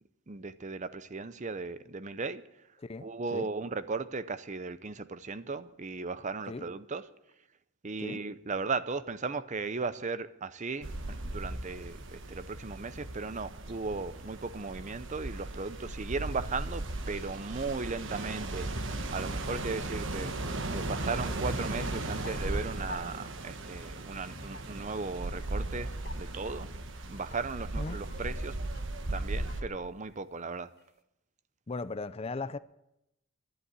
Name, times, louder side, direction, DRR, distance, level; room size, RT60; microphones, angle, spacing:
voice 1, 0.3-2.4 3.0-7.0 7.8-26.7 27.1-28.6 29.1-30.7, right 4 dB, 35° right, 0.6 m, -37 dB
voice 2, 2.8-3.5 6.5-6.6 8.0-8.2 27.8-28.0 31.7-32.6, left 3 dB, 30° left, 0.4 m, -37 dB
sound 1, 10.8-29.6, right 2 dB, 60° right, 1.3 m, -37 dB
sound 2, 21.8-23.0 23.3-23.4 23.8-24.0 24.4-25.1 25.4-25.5 25.8-29.7 30.1-30.2 30.6-30.8, left 2 dB, 50° left, 1.3 m, -49 dB
11.5 x 11.0 x 9.5 m
head